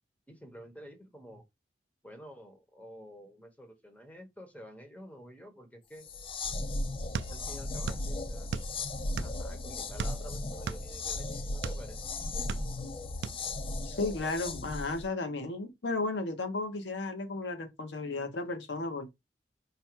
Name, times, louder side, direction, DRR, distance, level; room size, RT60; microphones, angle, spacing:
voice 1, 0.3-1.4 2.0-6.1 7.3-8.5 9.2-12.1, equal, 10° left, 1.0 m, -50 dB
sound 1, 6.0-15.1, left 2 dB, 30° left, 0.4 m, -36 dB
sound 2, 7.1-8.1 8.3-9.5 10.0-11.8 12.3-12.9 13.2-13.4, right 6 dB, 75° right, 0.4 m, -37 dB
voice 2, 13.8-19.1, left 3 dB, 85° left, 1.0 m, -34 dB
5.0 x 2.2 x 4.5 m
head